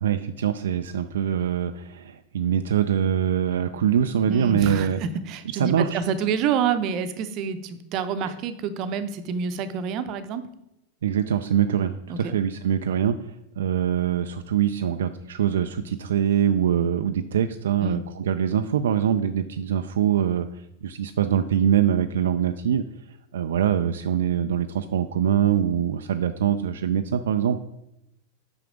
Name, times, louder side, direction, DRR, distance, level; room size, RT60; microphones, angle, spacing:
voice 1, 0.0-5.0 5.5-6.0 8.2-8.3 11.0-13.2 13.6-22.8 23.3-27.6, right 9 dB, 70° right, 8 dB, 0.3 m, -23 dB
voice 2, 4.3-10.4 12.1-12.4 17.8-18.0, right 6 dB, 45° right, 11 dB, 0.7 m, -28 dB
6.1 x 5.7 x 5.1 m, 0.86 s
figure-of-eight pair, 90°, 0 cm